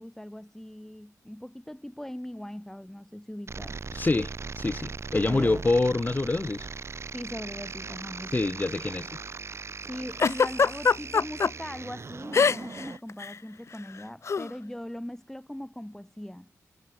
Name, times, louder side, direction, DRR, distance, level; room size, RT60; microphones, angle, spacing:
voice 1, 0.0-3.8 5.2-5.5 7.1-8.6 9.8-16.5, left 1 dB, 5° left, 7.8 m, -40 dB
sound 1, 3.5-13.0, right 4 dB, 45° right, 2.4 m, -39 dB
voice 2, 3.9-6.7 8.3-9.2, left 2 dB, 30° left, 4.5 m, -26 dB
Giggle, 10.2-11.5 12.3-12.8 13.1-13.3 14.3-14.5, left 5 dB, 50° left, 0.6 m, -22 dB
cardioid pair, 65°, 6 cm